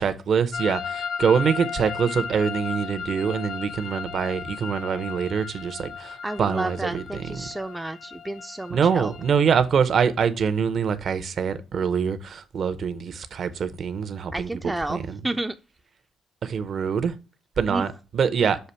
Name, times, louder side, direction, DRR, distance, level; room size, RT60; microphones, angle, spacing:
voice 1, 0.0-7.5 8.7-15.2 16.4-17.1 17.6-18.6, right 6 dB, 55° right, 0.7 m, -24 dB
sound 1, 0.5-9.6, left 7 dB, 70° left, 0.6 m, -35 dB
voice 2, 6.2-9.1 14.3-15.5 17.7-17.9, right 2 dB, 10° right, 0.4 m, -31 dB
6.6 x 2.6 x 5.5 m
cardioid pair, 90°, 0 cm